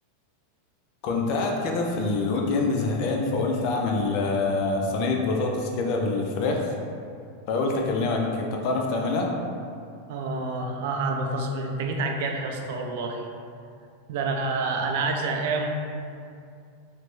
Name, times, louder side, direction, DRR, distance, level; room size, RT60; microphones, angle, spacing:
voice 1, 1.0-6.7 7.5-9.3, left 3 dB, 50° left, 1 dB, 0.4 m, -25 dB
voice 2, 10.1-13.3 14.1-15.7, right 3 dB, 65° right, 2 dB, 0.4 m, -28 dB
3.1 x 2.1 x 3.1 m, 2.4 s
supercardioid pair, 135°, 0 cm